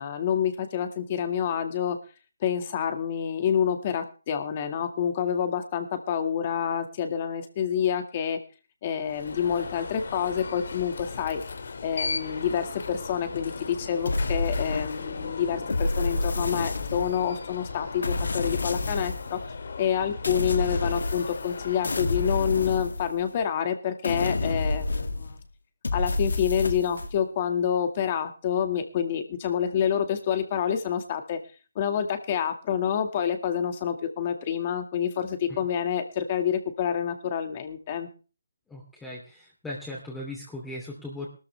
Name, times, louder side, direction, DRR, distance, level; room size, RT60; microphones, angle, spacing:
voice 1, 0.0-2.0 2.4-8.4 8.8-11.4 11.8-19.4 19.8-25.4 25.9-31.4 31.8-38.1, left 8 dB, 30° left, 7 dB, 1.9 m, -28 dB
Alarm, 9.0-23.0, left 4 dB, 60° left, 2.1 m, -37 dB
sound 1, 14.0-15.2 15.7-17.3 18.0-19.3 20.2-21.5 21.8-23.4 24.0-25.4 25.8-27.1, left 2 dB, 75° left, 2.3 m, -29 dB
voice 2, 38.7-41.3, left 1 dB, 5° left, -4 dB, 3.0 m, -38 dB
18.5 x 13.0 x 3.4 m, 0.36 s
figure-of-eight pair, 160°, 0 cm